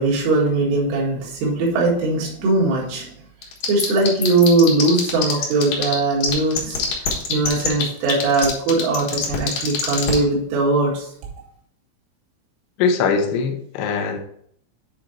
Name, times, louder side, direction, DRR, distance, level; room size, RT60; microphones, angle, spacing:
voice 1, 0.0-3.1 3.7-6.8 7.3-11.1, right 2 dB, 90° right, -4 dB, 4.7 m, -20 dB
sound 1, 3.4-5.9 6.2-10.1, left 10 dB, 65° left, 2.1 m, -23 dB
voice 2, 12.8-14.2, left 5 dB, 85° left, 4 dB, 2.4 m, -21 dB
9.3 x 3.9 x 4.4 m, 0.67 s
omnidirectional pair, 5.9 m